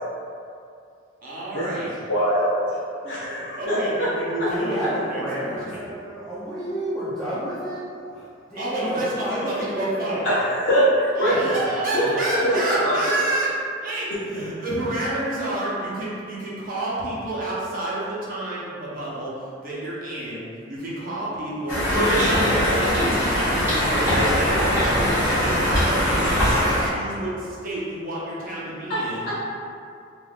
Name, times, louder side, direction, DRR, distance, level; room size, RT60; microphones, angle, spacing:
voice 1, 1.2-1.9 3.6-5.8 8.6-10.2 11.2-13.5 13.8-23.2 23.5-29.4, right 1 dB, 45° right, -7 dB, 0.8 m, -29 dB
voice 2, 2.1-2.8 3.0-4.1 4.4-4.5 10.2-11.4 11.9-12.1 12.4-12.6 12.8-12.9 29.3-29.4, equal, 65° left, -9 dB, 0.6 m, -22 dB
voice 3, 4.5-7.8 8.1-10.5 11.5-11.7 12.0-12.8, equal, 5° left, -14 dB, 0.5 m, -30 dB
Conversation, 21.7-26.9, equal, 10° right, 1.3 m, -21 dB
3.4 x 2.4 x 2.4 m, 2.4 s
head